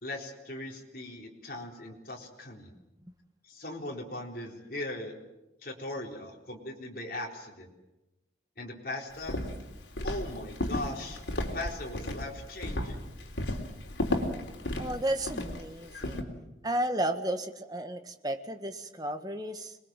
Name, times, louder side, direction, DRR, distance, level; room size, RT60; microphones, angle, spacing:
voice 1, 0.0-2.7 3.4-5.2 5.6-7.7 8.6-9.4 10.0-11.2 11.5-13.1, left 1 dB, 50° left, -1 dB, 4.0 m, -39 dB
Walk footsteps, 9.2-16.2, left 1 dB, 80° left, 3.6 m, -34 dB
voice 2, 14.8-16.2 16.6-19.8, right 1 dB, 20° right, 7 dB, 1.7 m, -33 dB
26.5 x 21.0 x 7.5 m, 0.96 s
head